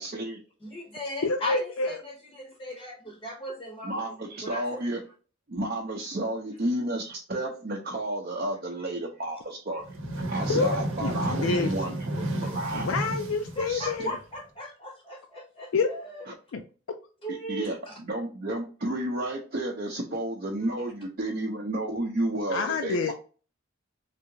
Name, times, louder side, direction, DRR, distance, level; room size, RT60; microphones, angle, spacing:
voice 1, 0.0-0.4 3.8-5.0 5.5-9.8 10.3-13.0 13.7-14.1 17.3-23.1, right 1 dB, 45° right, 0.5 m, -32 dB
voice 2, 0.6-4.0 4.4-4.8 13.6-16.3 17.2-17.9, equal, 25° left, 0.7 m, -37 dB
voice 3, 1.2-2.0 10.5-10.7 11.0-11.9 12.7-14.1 15.7-15.9 16.5-16.6 22.5-23.1, left 4 dB, 85° left, 0.4 m, -27 dB
sound 1, 9.8-14.4, right 1 dB, 80° right, 0.9 m, -32 dB
3.4 x 2.8 x 2.6 m
head